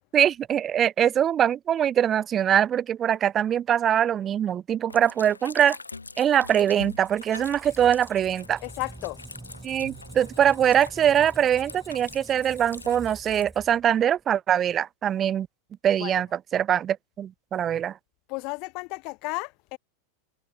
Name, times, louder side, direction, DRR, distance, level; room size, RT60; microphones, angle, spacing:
voice 1, 0.1-5.8 6.2-8.6 9.6-15.5 15.8-18.0, right 9 dB, 25° right, 0.6 m, -23 dB
sound 1, 4.9-13.4, left 3 dB, 80° left, 3.1 m, -44 dB
Squeak, 6.6-14.2, right 2 dB, 5° right, 5.1 m, -46 dB
voice 2, 8.6-9.2 16.0-16.2 18.3-19.8, left 29 dB, 45° left, 1.9 m, -33 dB
figure-of-eight pair, 90°, 0 cm